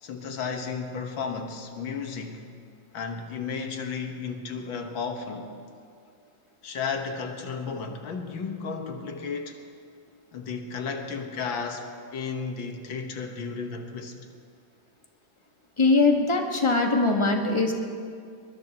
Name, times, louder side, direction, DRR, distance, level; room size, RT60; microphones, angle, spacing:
voice 1, 0.0-2.4 2.9-5.5 6.6-9.6 10.3-14.1, left 5 dB, 90° left, 4 dB, 2.1 m, -33 dB
voice 2, 15.8-17.7, left 3 dB, 15° left, 2 dB, 1.3 m, -21 dB
22.5 x 21.0 x 3.0 m, 2.2 s
omnidirectional pair, 2.1 m